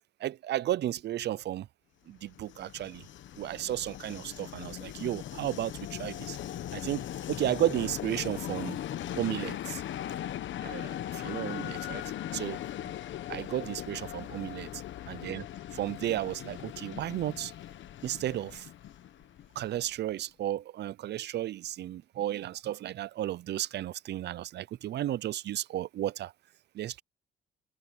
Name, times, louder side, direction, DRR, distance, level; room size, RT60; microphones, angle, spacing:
voice 1, 0.2-1.7 2.1-3.0 3.3-6.4 6.7-8.8 9.1-9.8 10.6-12.0 12.3-12.6 13.3-15.5 15.7-17.5 18.0-18.7 19.6-26.3 26.7-27.0, right 13 dB, 60° right, 0.5 m, -33 dB
Train, 2.2-20.0, left 12 dB, 70° left, 1.1 m, -39 dB
cardioid pair, 90°, 20 cm